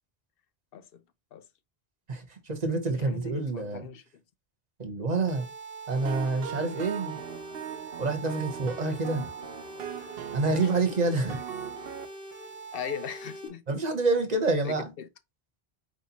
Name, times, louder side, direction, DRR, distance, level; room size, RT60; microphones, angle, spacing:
voice 1, 0.7-1.0 1.3-1.5 2.9-4.0 10.6-10.7 12.7-13.8 14.6-15.1, left 8 dB, 65° left, 0.7 m, -39 dB
voice 2, 2.1-3.9 4.8-5.5 5.9-7.2 8.0-9.3 10.3-11.4 13.7-14.8, right 3 dB, 40° right, 1.0 m, -27 dB
sound 1, 5.3-13.5, right 2 dB, 15° right, 1.3 m, -43 dB
sound 2, 6.0-12.1, right 9 dB, 70° right, 0.8 m, -40 dB
4.5 x 4.2 x 2.8 m
omnidirectional pair, 1.1 m